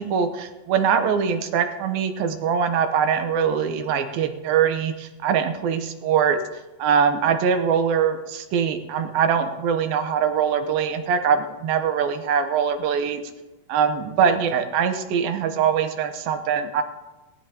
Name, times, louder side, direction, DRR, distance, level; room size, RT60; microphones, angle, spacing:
voice 1, 0.0-6.4 6.8-13.2 13.7-16.8, right 7 dB, 75° right, 8 dB, 2.5 m, -22 dB
19.0 x 12.5 x 2.9 m, 1.1 s
omnidirectional pair, 4.6 m